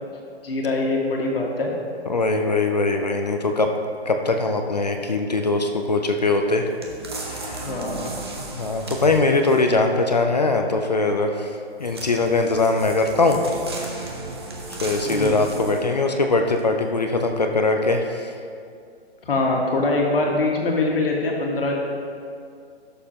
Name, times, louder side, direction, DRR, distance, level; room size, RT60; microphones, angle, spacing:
voice 1, 0.4-1.7 7.6-8.1 15.0-15.4 19.3-21.7, left 2 dB, 60° left, -1 dB, 1.8 m, -23 dB
voice 2, 2.1-3.7 4.1-6.7 7.3-7.8 8.5-11.5 11.8-13.4 14.0-14.1 14.8-18.3, left 3 dB, 40° left, 4 dB, 0.5 m, -21 dB
sound 1, 6.8-9.8 11.8-16.0 16.6-16.7, right 2 dB, 25° right, 0.7 m, -35 dB
13.0 x 6.6 x 2.9 m, 2.3 s
hypercardioid pair, 180°, 33 cm